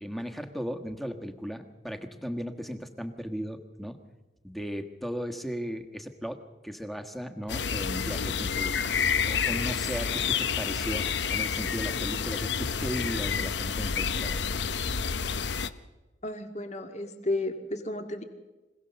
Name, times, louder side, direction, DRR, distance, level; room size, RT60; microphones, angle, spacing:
voice 1, 0.0-4.0 4.4-14.5, equal, ahead, 7 dB, 1.4 m, -36 dB
sound 1, 7.5-15.7, left 6 dB, 70° left, 0.8 m, -29 dB
voice 2, 16.2-18.2, left 2 dB, 40° left, 6 dB, 2.0 m, -33 dB
26.0 x 17.5 x 6.9 m, 1.2 s
head